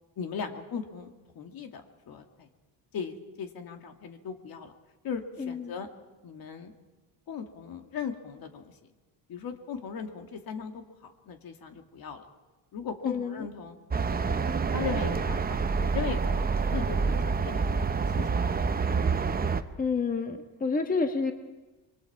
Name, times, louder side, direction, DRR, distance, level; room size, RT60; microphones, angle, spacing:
voice 1, 0.2-1.8 2.1-2.5 2.9-4.7 5.0-5.9 6.2-6.7 7.3-8.7 9.3-12.3 12.7-13.8 14.2-18.4 18.7-18.9, left 6 dB, 60° left, 5 dB, 2.0 m, -38 dB
voice 2, 5.4-5.7 13.0-13.5 19.8-21.3, left 4 dB, 20° left, 6 dB, 1.5 m, -29 dB
sound 1, 13.9-19.6, right 5 dB, 25° right, 0.8 m, -27 dB
25.0 x 22.5 x 4.7 m, 1.2 s
cardioid pair, 115°, 40 cm